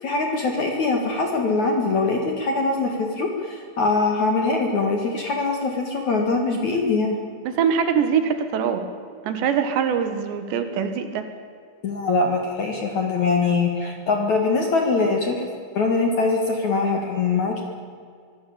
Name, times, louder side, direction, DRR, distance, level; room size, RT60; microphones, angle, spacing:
voice 1, 0.0-7.2 11.8-15.5 15.8-17.6, left 3 dB, 50° left, 3 dB, 2.5 m, -22 dB
voice 2, 7.5-8.9 9.2-11.3, right 7 dB, 70° right, 8 dB, 3.6 m, -23 dB
24.5 x 16.5 x 8.6 m, 2.3 s
omnidirectional pair, 5.6 m